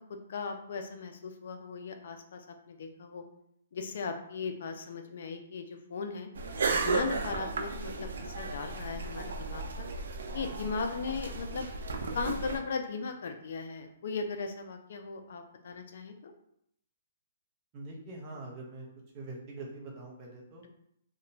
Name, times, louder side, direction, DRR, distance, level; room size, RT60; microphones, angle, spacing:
voice 1, 0.1-3.2 3.7-6.3 6.8-9.9 10.3-11.7 12.1-16.3, left 4 dB, 55° left, 6 dB, 0.3 m, -37 dB
sound 1, 6.4-12.6, right 4 dB, 75° right, 0.4 m, -34 dB
voice 2, 17.7-18.9 19.1-20.7, right 2 dB, 20° right, -1 dB, 0.5 m, -44 dB
2.8 x 2.1 x 2.6 m, 0.73 s
hypercardioid pair, 170°, 0 cm